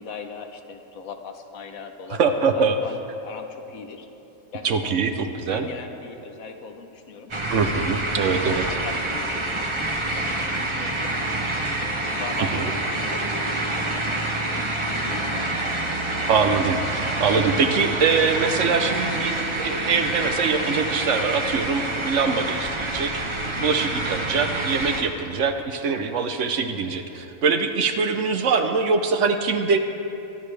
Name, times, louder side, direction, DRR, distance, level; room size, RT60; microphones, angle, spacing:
voice 1, 0.0-4.1 4.5-5.0 5.5-7.3 8.1-11.1 11.8-12.7 13.1-14.2 14.4-15.7 23.5-23.8 27.8-27.9, left 5 dB, 75° left, 5 dB, 1.4 m, -40 dB
voice 2, 2.1-2.8 4.6-5.7 7.5-8.7 12.4-12.7 16.3-29.8, right 5 dB, 65° right, 7 dB, 1.1 m, -23 dB
sound 1, 7.3-25.0, right 2 dB, 25° right, 0.9 m, -27 dB
23.5 x 10.5 x 3.4 m, 3.0 s
omnidirectional pair, 1.5 m